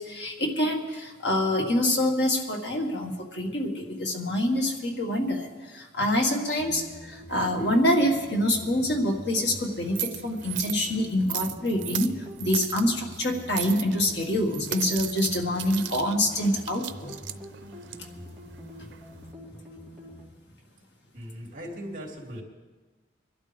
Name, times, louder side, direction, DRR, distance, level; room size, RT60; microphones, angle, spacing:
voice 1, 0.0-12.1 12.4-17.1, left 1 dB, 70° left, 1 dB, 1.9 m, -26 dB
sound 1, 6.6-20.3, left 1 dB, ahead, 3.2 m, -45 dB
sound 2, 7.3-19.3, right 12 dB, 80° right, 0.6 m, -38 dB
voice 2, 21.1-22.4, equal, 45° right, 0 dB, 3.0 m, -38 dB
24.0 x 12.0 x 3.5 m, 1.3 s
head